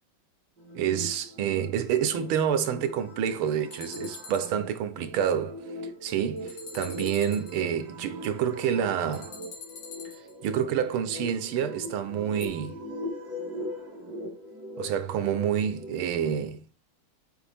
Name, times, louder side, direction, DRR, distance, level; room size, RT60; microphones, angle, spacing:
sound 1, 0.6-15.9, equal, 50° right, 2.4 m, -40 dB
voice 1, 0.7-5.6 5.8-9.3 10.4-12.8 14.8-16.6, right 9 dB, 85° right, 1.6 m, -28 dB
sound 2, 3.7-4.5 6.4-7.6 9.1-10.5 12.4-12.5, left 4 dB, 80° left, 2.4 m, -44 dB
7.2 x 4.6 x 3.4 m
omnidirectional pair, 2.3 m